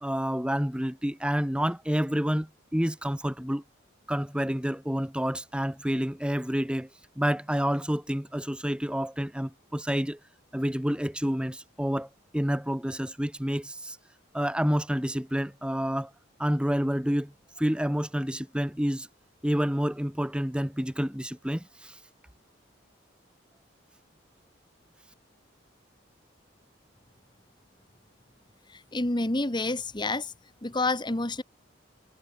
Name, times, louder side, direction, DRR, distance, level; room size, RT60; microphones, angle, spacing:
voice 1, 0.0-3.6 4.1-6.9 7.2-10.2 10.5-12.1 12.3-14.0 14.3-16.1 16.4-17.3 17.6-19.1 19.4-22.0, equal, 5° right, 1.2 m, -28 dB
voice 2, 28.7-30.3 30.6-31.4, left 2 dB, 25° left, 1.3 m, -28 dB
head